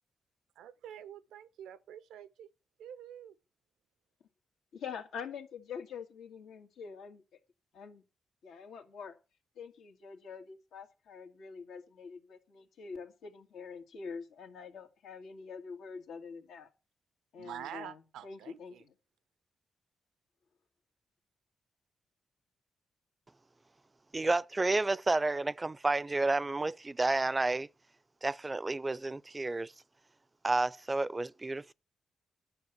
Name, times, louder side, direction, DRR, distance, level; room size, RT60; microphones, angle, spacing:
voice 1, 0.6-2.5 2.8-3.4 17.4-18.8, right 10 dB, 90° right, 0.8 m, -47 dB
voice 2, 4.7-7.2 7.7-8.0 8.4-9.2 9.6-16.7 17.3-18.7, left 6 dB, 85° left, 2.2 m, -45 dB
voice 3, 24.1-27.7 28.2-29.7 30.4-31.7, right 2 dB, 30° right, 0.5 m, -30 dB
11.0 x 6.5 x 8.2 m
supercardioid pair, 50°, 0 cm